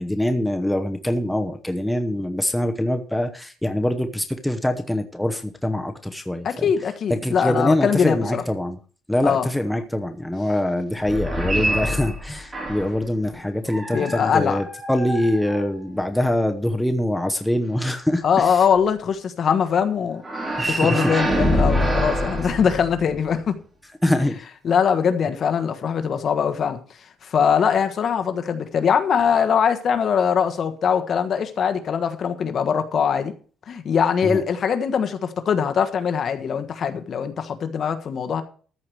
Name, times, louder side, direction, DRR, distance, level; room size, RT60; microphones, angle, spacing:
voice 1, 0.0-6.7 7.1-8.8 9.1-18.7 20.6-21.1 22.4-22.5 24.0-24.4 34.2-34.4, left 1 dB, 5° left, 6 dB, 0.9 m, -24 dB
voice 2, 6.4-8.4 9.2-9.5 13.9-14.6 18.2-20.2 20.7-23.5 24.6-26.8 27.2-33.3 33.7-38.4, left 7 dB, 45° left, 8 dB, 1.3 m, -22 dB
sound 1, 11.0-13.0 13.7-16.1 20.2-23.3, equal, 20° right, 3.2 m, -26 dB
14.0 x 4.9 x 7.7 m, 0.42 s
cardioid pair, 140°, 0 cm